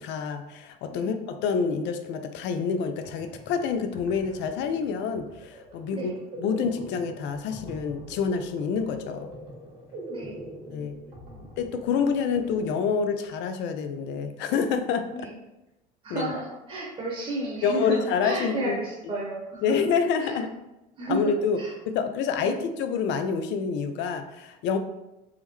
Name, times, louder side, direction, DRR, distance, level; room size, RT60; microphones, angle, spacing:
voice 1, 0.0-6.1 6.4-9.3 10.7-11.0 11.6-15.3 16.1-16.3 17.6-18.8 19.6-20.5 21.1-24.8, left 6 dB, 65° left, 8 dB, 0.4 m, -27 dB
sound 1, 3.0-13.6, right 1 dB, 70° right, 1.4 m, -44 dB
voice 2, 10.1-11.4 15.1-15.3 16.0-19.7 20.2-20.4 21.0-21.7 22.4-22.6, right 2 dB, 30° right, -4 dB, 0.9 m, -33 dB
3.6 x 2.1 x 3.0 m, 0.97 s
supercardioid pair, 90°, 20 cm